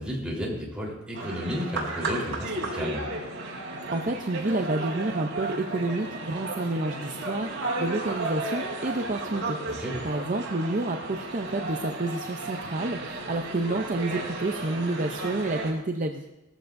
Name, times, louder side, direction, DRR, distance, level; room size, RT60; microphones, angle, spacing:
voice 1, 0.0-3.0 9.7-10.0, equal, 5° right, -4 dB, 3.8 m, -32 dB
sound 1, 1.1-15.7, right 2 dB, 60° right, 3.4 m, -34 dB
voice 2, 3.9-9.6 10.0-16.4, right 2 dB, 35° right, 4 dB, 0.6 m, -29 dB
19.5 x 14.5 x 2.6 m, 1.0 s
head